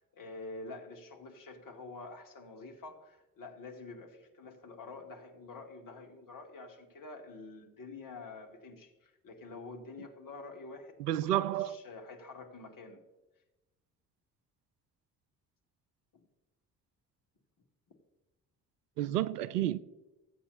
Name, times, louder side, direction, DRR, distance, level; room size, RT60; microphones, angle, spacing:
voice 1, 0.0-13.0 16.1-16.2, left 3 dB, 45° left, 2.3 m, -48 dB
voice 2, 11.0-11.8 19.0-19.8, right 13 dB, 80° right, 0.6 m, -30 dB
15.0 x 8.5 x 4.2 m
figure-of-eight pair, 45°, 47 cm